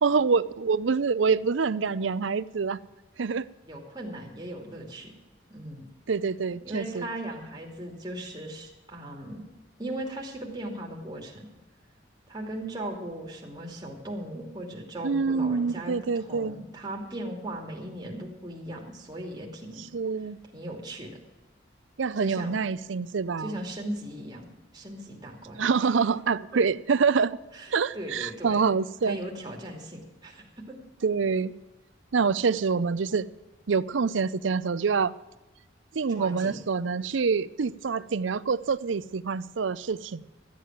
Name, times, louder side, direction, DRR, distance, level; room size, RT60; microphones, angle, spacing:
voice 1, 0.0-2.8 3.2-3.5 6.1-7.1 15.0-16.5 19.8-20.4 22.0-23.6 25.6-27.4 27.7-29.2 31.0-31.5 32.1-33.3 33.7-35.1 35.9-40.2, right 5 dB, 80° right, 17 dB, 0.5 m, -26 dB
voice 2, 3.7-5.1 5.5-5.8 6.6-9.4 9.8-11.5 12.3-19.8 20.5-21.2 22.2-22.6 23.4-25.6 27.5-28.6 29.0-30.7 36.2-36.6, right 1 dB, 20° right, 0 dB, 2.7 m, -38 dB
13.5 x 8.4 x 7.5 m, 1.1 s
head